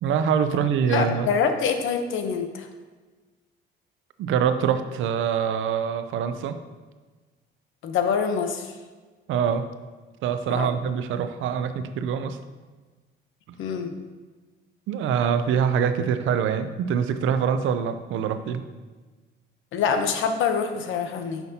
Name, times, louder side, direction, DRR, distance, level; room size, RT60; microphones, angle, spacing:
voice 1, 0.0-1.3 4.2-6.6 9.3-9.7 10.2-12.4 14.9-18.7, right 7 dB, 80° right, 10 dB, 0.5 m, -24 dB
voice 2, 0.9-2.7 7.8-8.7 10.5-10.7 13.6-13.9 19.7-21.4, left 6 dB, 80° left, 6 dB, 0.8 m, -25 dB
9.3 x 5.9 x 2.8 m, 1.3 s
cardioid pair, 90°, 20 cm